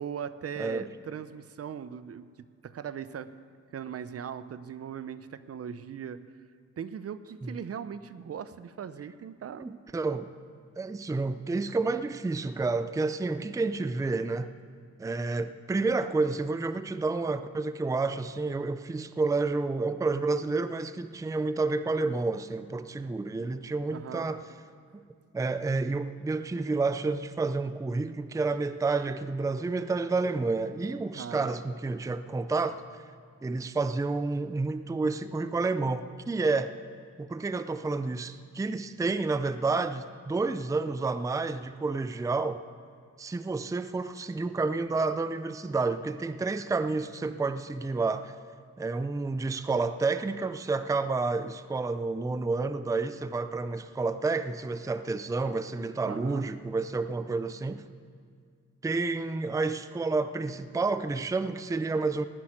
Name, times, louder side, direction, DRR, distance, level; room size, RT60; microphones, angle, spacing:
voice 1, 0.0-3.3 3.7-6.2 6.8-9.7 23.9-24.3 31.2-31.5 56.0-56.5, right 8 dB, 55° right, 14 dB, 0.6 m, -39 dB
voice 2, 9.6-10.3 10.8-14.5 15.0-24.4 24.9-25.0 25.3-32.8 33.4-36.7 37.2-42.6 43.2-48.3 48.8-57.8 58.8-62.3, right 3 dB, 10° right, 12 dB, 0.5 m, -30 dB
17.5 x 6.4 x 9.9 m, 2.1 s
cardioid pair, 85°, 29 cm